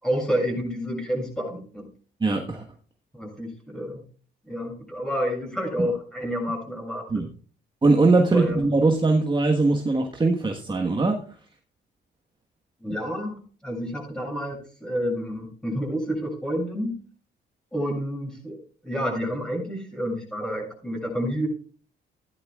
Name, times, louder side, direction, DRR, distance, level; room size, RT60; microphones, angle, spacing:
voice 1, 0.0-1.9 3.1-4.0 4.5-7.2 8.3-8.6 12.8-17.0 17.7-18.6 18.8-21.5, equal, 5° left, 0 dB, 7.0 m, -29 dB
voice 2, 2.2-2.6 5.8-5.9 7.1-7.3 7.8-11.2, right 3 dB, 25° right, 2 dB, 1.4 m, -21 dB
16.0 x 11.0 x 2.4 m, 0.41 s
cardioid pair, 90°, 20 cm